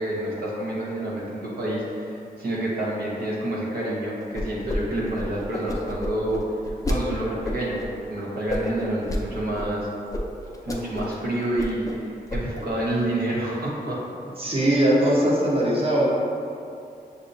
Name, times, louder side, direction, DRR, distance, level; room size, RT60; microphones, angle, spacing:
voice 1, 0.0-6.4 6.9-9.9 10.6-14.0, right 1 dB, 75° right, -6 dB, 0.9 m, -28 dB
sound 1, 4.3-4.8 5.0-7.0 7.4-7.9 8.5-9.2 9.6-9.7 10.1-10.2 10.5-11.2 11.4-12.0 12.3-12.7, left 1 dB, 20° left, 0.5 m, -29 dB
voice 2, 14.4-16.1, right 1 dB, 35° right, -6 dB, 1.0 m, -20 dB
6.7 x 2.6 x 2.6 m, 2.6 s
cardioid pair, 70°, 16 cm